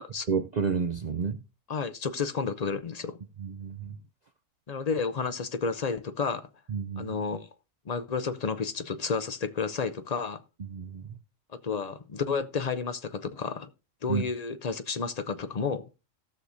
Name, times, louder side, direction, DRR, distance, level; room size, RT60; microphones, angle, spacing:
voice 1, 0.3-1.4 3.4-4.0 6.7-7.2 10.7-11.2 14.1-14.2, right 6 dB, 55° right, 0.5 m, -30 dB
voice 2, 1.7-3.2 4.7-6.5 7.0-7.5 7.9-10.4 11.6-13.7 14.0-15.9, left 5 dB, 50° left, 0.5 m, -31 dB
18.0 x 6.4 x 2.6 m
omnidirectional pair, 1.4 m